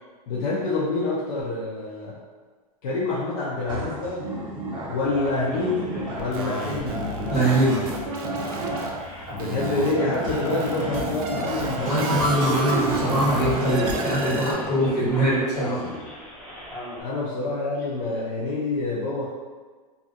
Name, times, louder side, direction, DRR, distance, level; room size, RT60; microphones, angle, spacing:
voice 1, 0.3-2.2 2.8-4.3 4.9-7.0 9.3-12.8 17.0-19.3, left 3 dB, 70° left, -7 dB, 0.6 m, -27 dB
sound 1, 3.6-14.4, right 1 dB, 25° right, 0.8 m, -33 dB
Male speech man speaking, 5.0-17.0, left 1 dB, 5° left, 0.8 m, -37 dB
sound 2, 6.2-8.9 9.4-14.5, right 3 dB, 65° right, 0.5 m, -32 dB
voice 2, 7.3-7.8 11.9-15.8, right 1 dB, 85° left, -8 dB, 1.3 m, -22 dB
2.5 x 2.4 x 2.5 m, 1.4 s
hypercardioid pair, 125°, 20 cm